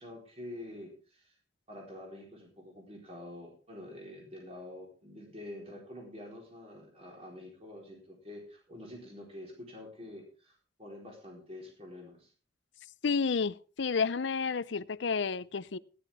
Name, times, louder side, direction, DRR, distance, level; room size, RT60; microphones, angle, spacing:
voice 1, 0.0-1.4 1.7-12.3, left 1 dB, 30° right, 4.3 m, -47 dB
voice 2, 13.0-15.8, left 5 dB, 70° left, 0.6 m, -30 dB
16.5 x 11.0 x 3.6 m
head